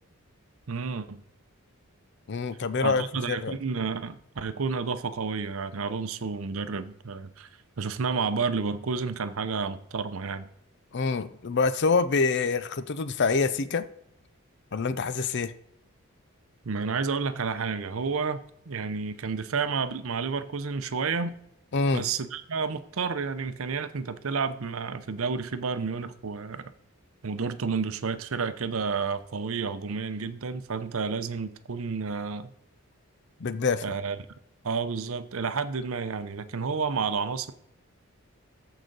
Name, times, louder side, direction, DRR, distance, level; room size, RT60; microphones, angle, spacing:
voice 1, 0.7-1.2 2.8-7.5 7.8-10.5 16.6-21.4 21.9-26.7 27.2-32.5 33.8-34.2 34.6-37.5, right 5 dB, 65° right, 12 dB, 0.7 m, -30 dB
voice 2, 2.3-3.6 10.9-13.9 14.7-15.5 21.7-22.1 33.4-33.8, left 4 dB, 50° left, 14 dB, 0.5 m, -26 dB
14.0 x 5.0 x 4.0 m, 0.77 s
head